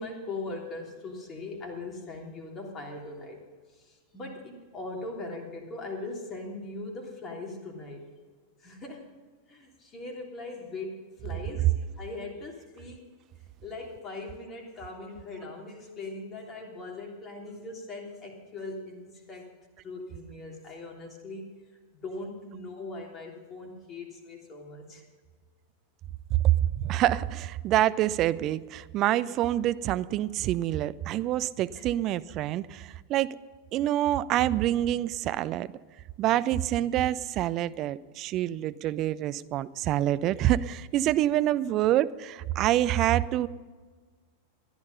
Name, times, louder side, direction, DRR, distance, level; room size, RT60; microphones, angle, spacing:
voice 1, 0.0-3.4 3.7-8.0 8.6-9.1 9.5-13.1 13.6-19.5 19.8-21.5 22.0-25.0 31.7-31.9, left 2 dB, 25° left, 0 dB, 3.2 m, -40 dB
voice 2, 26.3-33.4 33.7-35.7 36.2-43.5, right 13 dB, 35° right, 16 dB, 0.5 m, -26 dB
14.5 x 11.0 x 5.6 m, 1.5 s
figure-of-eight pair, 90°, 0 cm